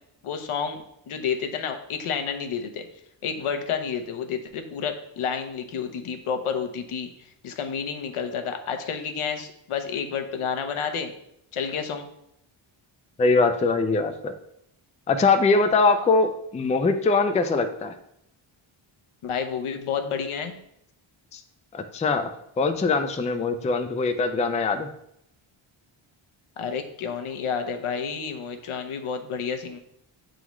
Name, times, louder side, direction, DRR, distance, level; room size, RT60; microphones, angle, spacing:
voice 1, 0.2-2.9 3.2-7.1 7.4-11.1 11.5-12.1 19.2-20.6 26.6-29.8, left 6 dB, 80° left, 6 dB, 0.9 m, -30 dB
voice 2, 13.2-14.4 15.1-17.9 21.3-21.4 21.7-22.3 22.6-24.9, left 3 dB, 15° left, 7 dB, 0.3 m, -22 dB
8.1 x 3.9 x 3.1 m, 0.76 s
wide cardioid pair, 130°, 49 cm